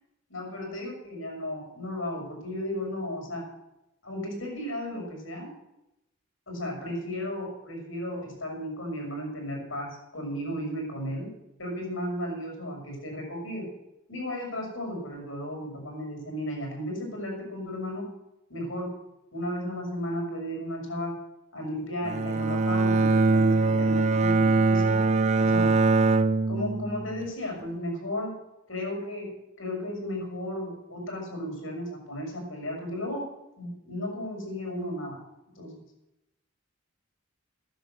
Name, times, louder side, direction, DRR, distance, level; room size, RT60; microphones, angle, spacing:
voice 1, 0.3-3.5 4.0-5.5 6.5-11.3 11.6-13.7 14.1-18.1 18.5-18.9 19.3-21.2 21.5-25.0 25.4-25.7 26.5-28.4 28.7-29.3 29.6-33.2 33.6-35.2 35.6-35.8, equal, 75° left, 0 dB, 6.4 m, -34 dB
Bowed string instrument, 22.0-27.3, right 3 dB, 30° right, 0.6 m, -22 dB
13.5 x 10.0 x 8.1 m, 0.91 s
head